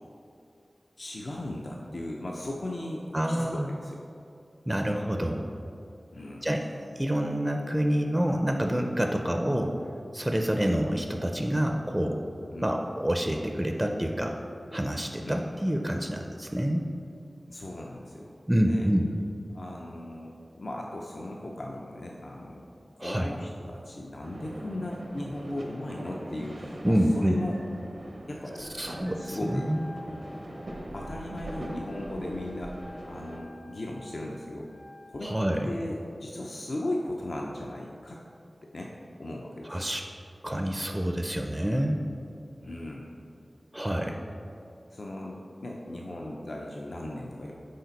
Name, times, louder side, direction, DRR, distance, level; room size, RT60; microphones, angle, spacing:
voice 1, 1.0-4.0 6.1-6.5 12.5-12.7 15.2-15.5 17.5-18.9 19.5-22.7 23.0-27.6 28.3-29.7 30.9-34.7 35.1-35.3 35.6-38.2 38.6-38.9 39.2-39.9 42.6-43.2 44.0-44.2 44.9-47.5, left 1 dB, 65° left, -2 dB, 0.5 m, -37 dB
voice 2, 3.1-3.7 4.7-5.4 6.4-6.6 7.0-9.8 10.1-12.2 12.6-14.4 14.7-16.9 18.5-19.1 23.0-23.3 26.8-27.4 28.6-29.8 35.2-35.7 39.6-40.0 40.4-42.0 43.7-44.2, equal, 15° right, 3 dB, 0.4 m, -27 dB
sound 1, 24.2-33.4, right 1 dB, 75° right, 0.7 m, -42 dB
Wind instrument woodwind instrument, 29.1-35.3, left 2 dB, 90° left, 0.8 m, -49 dB
6.5 x 4.3 x 4.1 m, 2.5 s
wide cardioid pair, 50°, 0 cm